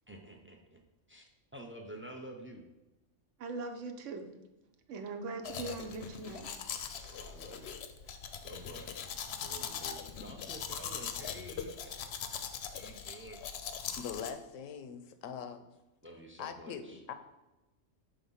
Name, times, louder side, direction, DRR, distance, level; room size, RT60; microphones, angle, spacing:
voice 1, 0.1-0.8 1.1-2.7 7.1-7.7 8.0-8.2 8.4-9.1 9.4-12.1 12.7-13.4 16.0-17.0, right 1 dB, 20° right, 3 dB, 0.3 m, -49 dB
voice 2, 3.4-4.3 4.9-6.5 7.0-7.1 8.1-8.2, right 3 dB, 75° right, 5 dB, 1.0 m, -41 dB
Domestic sounds home sounds, 5.4-14.3, left 7 dB, 65° left, 0.8 m, -41 dB
voice 3, 14.0-15.7 16.4-17.1, left 7 dB, 85° left, 8 dB, 1.0 m, -42 dB
5.7 x 3.5 x 5.5 m, 1.0 s
omnidirectional pair, 1.3 m